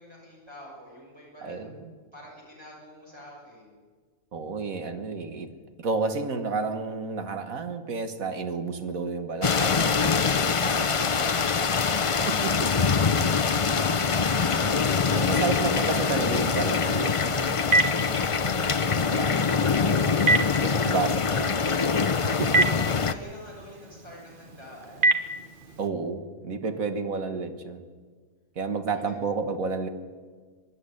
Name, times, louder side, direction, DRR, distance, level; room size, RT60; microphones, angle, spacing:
voice 1, 0.0-1.6 2.1-3.8 22.4-25.1 26.7-27.0 28.7-29.1, equal, 20° right, -5 dB, 6.5 m, -47 dB
voice 2, 1.4-1.9 4.3-5.5 5.8-11.6 12.2-12.9 14.6-20.0 20.6-21.9 22.1-22.7 25.8-27.8 28.6-29.9, right 4 dB, 80° right, 8 dB, 1.9 m, -32 dB
sound 1, 9.4-23.1, left 5 dB, 40° left, 0.4 m, -24 dB
Telephone, 17.0-25.9, right 2 dB, 40° right, 1.4 m, -29 dB
24.0 x 11.0 x 10.0 m, 1.5 s
omnidirectional pair, 1.4 m